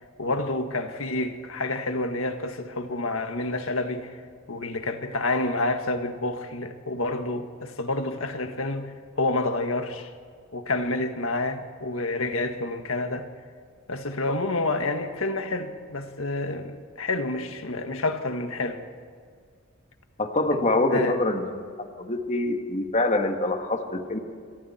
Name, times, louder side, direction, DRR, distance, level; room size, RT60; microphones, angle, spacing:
voice 1, 0.0-4.2 4.5-10.1 10.5-13.3 13.9-18.8 20.5-20.6 20.9-21.2, left 2 dB, 80° left, 1.7 m, -29 dB
voice 2, 20.2-21.4 22.0-24.2, left 2 dB, 35° left, 1.8 m, -25 dB
27.5 x 23.5 x 4.4 m
head